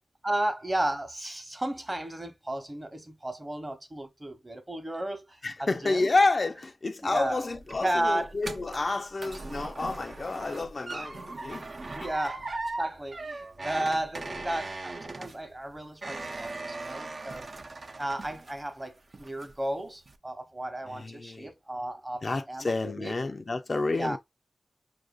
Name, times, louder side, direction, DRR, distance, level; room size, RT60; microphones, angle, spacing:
voice 1, 0.2-6.1 7.0-7.4 7.8-8.3 11.9-17.5 18.0-23.2 23.9-24.2, right 1 dB, 25° right, 0.9 m, -33 dB
voice 2, 5.4-11.7 12.0-12.1 20.9-21.5 22.2-24.2, left 3 dB, 50° left, 0.4 m, -29 dB
sound 1, 7.2-18.8 19.1-19.7 20.0-20.2, right 2 dB, 55° right, 0.4 m, -39 dB
4.8 x 2.5 x 2.3 m
cardioid pair, 45°, 0 cm